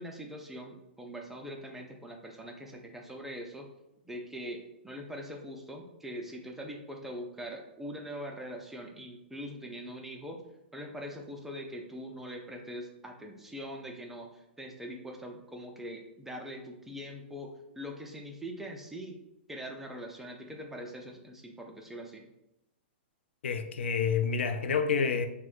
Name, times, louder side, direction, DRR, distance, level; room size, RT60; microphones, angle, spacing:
voice 1, 0.0-3.7 4.0-4.6 4.8-10.4 10.7-19.2 19.5-22.3, equal, 5° right, 0.3 m, -42 dB
voice 2, 23.4-25.3, left 6 dB, 80° left, 0.3 m, -28 dB
4.2 x 2.1 x 2.3 m
hypercardioid pair, 135°, 6 cm